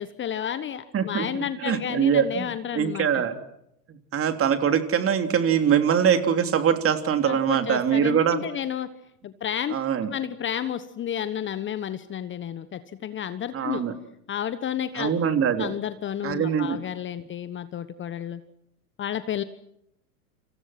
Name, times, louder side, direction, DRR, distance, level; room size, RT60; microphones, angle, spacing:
voice 1, 0.0-3.3 7.2-8.9 9.2-9.7 10.1-13.8 14.3-15.1 15.6-18.4 19.0-19.4, left 9 dB, 25° left, 13 dB, 1.2 m, -31 dB
voice 2, 0.9-3.4 3.9-8.4 9.7-10.1 13.5-13.9 14.9-15.7 16.2-16.8, right 8 dB, 30° right, 7 dB, 3.2 m, -23 dB
29.5 x 26.5 x 6.1 m, 0.78 s
hypercardioid pair, 95°, 46 cm